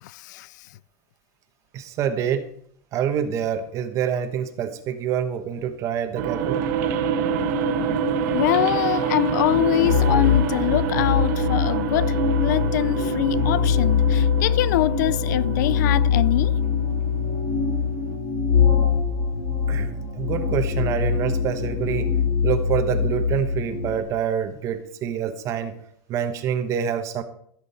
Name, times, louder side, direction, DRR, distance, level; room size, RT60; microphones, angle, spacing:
voice 1, 0.0-0.5 8.3-16.5, left 15 dB, 85° left, 0.4 m, -24 dB
voice 2, 1.7-2.5 2.9-6.6 19.7-22.1 22.4-25.8 26.1-27.2, right 8 dB, 35° right, 1.1 m, -26 dB
sound 1, 6.2-18.2, right 7 dB, 65° right, 1.4 m, -27 dB
sound 2, 9.5-24.0, left 7 dB, 60° left, 3.2 m, -23 dB
15.0 x 7.5 x 4.3 m
supercardioid pair, 165°, 9 cm